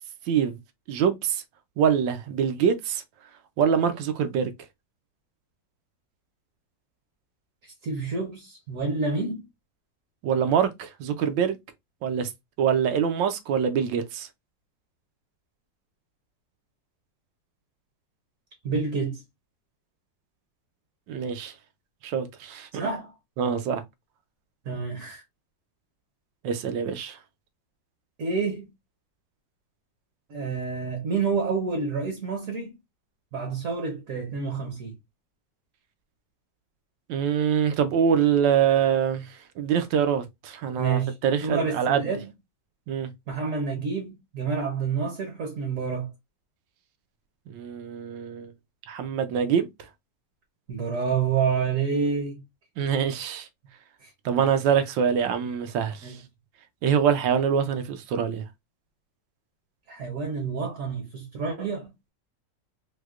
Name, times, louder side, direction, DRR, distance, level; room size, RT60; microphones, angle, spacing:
voice 1, 0.3-0.6 0.9-1.4 1.8-3.0 3.6-4.5 10.2-11.6 12.0-12.3 12.6-14.3 21.1-21.5 22.0-22.9 23.4-23.8 26.4-27.2 37.1-42.0 42.9-43.1 47.5-48.5 48.9-49.7 52.8-53.5 54.2-56.2 56.8-58.5, right 8 dB, 80° right, 1.3 m, -24 dB
voice 2, 7.8-9.4 18.6-19.2 22.8-23.1 24.6-25.2 28.2-28.7 30.3-32.7 33.3-34.9 40.8-41.1 41.4-42.3 43.3-46.1 50.7-52.4 54.0-54.1 54.4-54.5 56.0-56.2 59.9-61.9, right 5 dB, 60° right, 1.0 m, -28 dB
4.6 x 2.1 x 2.3 m
omnidirectional pair, 2.0 m